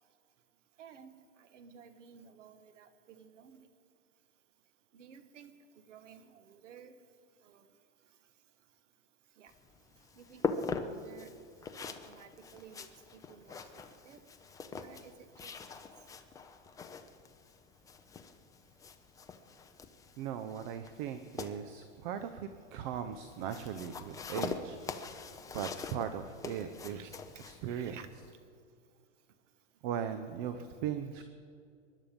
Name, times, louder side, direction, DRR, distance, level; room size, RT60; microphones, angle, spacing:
voice 1, 0.8-3.6 4.9-5.5 5.9-6.9 7.4-7.6 9.4-9.5 10.2-11.3 11.8-12.9 13.1-14.2 14.7-15.5 26.9-27.1 27.7-28.1, right 7 dB, 75° right, 10 dB, 1.6 m, -54 dB
sound 1, 9.5-28.3, left 5 dB, 10° left, 0.6 m, -43 dB
voice 2, 20.2-24.8 25.5-27.1 27.5-27.9 29.8-31.2, right 8 dB, 40° right, 9 dB, 0.9 m, -38 dB
24.0 x 11.0 x 5.3 m, 2.4 s
hypercardioid pair, 135°, 37 cm